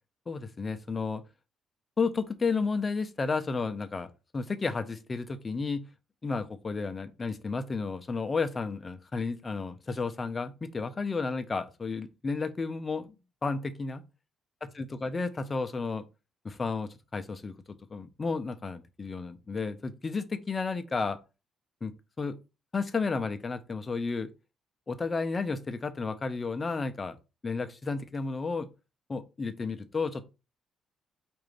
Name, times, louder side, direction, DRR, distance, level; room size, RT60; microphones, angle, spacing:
voice 1, 0.3-1.2 2.0-5.8 6.2-13.1 13.4-14.0 14.6-16.0 16.4-21.2 21.8-22.4 22.7-24.3 24.9-27.2 27.4-28.7 29.1-30.3, left 4 dB, 30° left, 0.6 m, -32 dB
4.9 x 2.6 x 3.2 m
cardioid pair, 90°, 0 cm